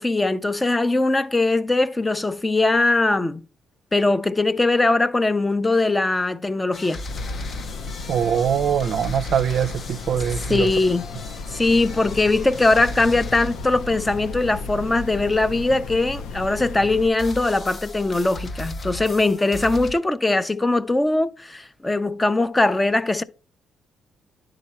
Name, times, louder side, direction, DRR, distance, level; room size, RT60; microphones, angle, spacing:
voice 1, 0.0-3.4 3.9-7.0 10.5-11.1 11.5-23.2, left 2 dB, 15° left, 0.4 m, -21 dB
sound 1, 6.7-16.7 17.2-19.9, left 1 dB, 45° left, 0.7 m, -37 dB
sound 2, 7.1-17.1, left 4 dB, 80° left, 0.5 m, -34 dB
voice 2, 8.1-10.7, right 8 dB, 70° right, 0.4 m, -22 dB
10.5 x 3.8 x 4.2 m
cardioid pair, 90°, 0 cm